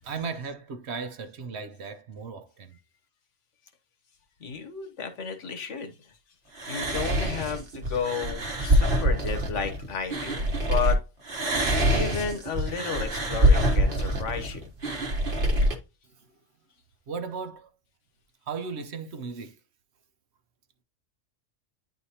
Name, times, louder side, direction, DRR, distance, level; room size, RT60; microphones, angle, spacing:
voice 1, 0.0-2.8 16.1-16.3 17.1-17.7 18.5-19.6, right 5 dB, 65° right, 1.0 m, -36 dB
voice 2, 4.4-6.2 6.7-11.0 11.9-14.7, left 6 dB, 70° left, 1.5 m, -33 dB
sound 1, 6.6-10.9 11.3-15.8, equal, 45° right, 1.2 m, -25 dB
9.7 x 4.1 x 2.8 m
omnidirectional pair, 1.3 m